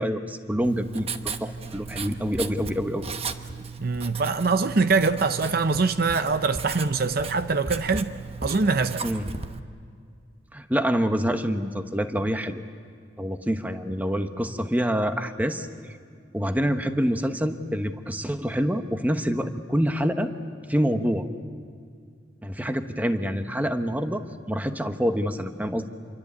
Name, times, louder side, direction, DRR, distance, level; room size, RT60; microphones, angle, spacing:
voice 1, 0.0-3.1 9.0-9.3 10.5-12.6 13.2-15.7 16.3-20.3 20.7-21.3 22.4-25.9, equal, 10° right, 1.1 m, -26 dB
Writing, 0.6-9.6, right 4 dB, 30° right, 1.0 m, -36 dB
voice 2, 3.8-8.1 8.4-9.0, right 4 dB, 55° right, 0.7 m, -23 dB
27.5 x 23.5 x 8.5 m
head